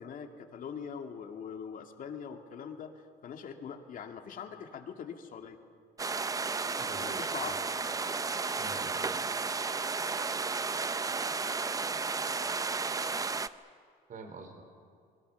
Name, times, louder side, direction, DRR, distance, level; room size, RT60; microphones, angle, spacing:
voice 1, 0.0-2.9 3.2-5.6 7.0-7.6, left 7 dB, 55° left, 5 dB, 2.4 m, -42 dB
sound 1, 6.0-13.5, right 4 dB, 20° right, 0.7 m, -33 dB
voice 2, 6.8-7.6 8.6-9.2 14.1-14.6, right 3 dB, 50° right, 6 dB, 3.9 m, -46 dB
25.5 x 21.5 x 7.0 m, 2.3 s
cardioid pair, 110°, 17 cm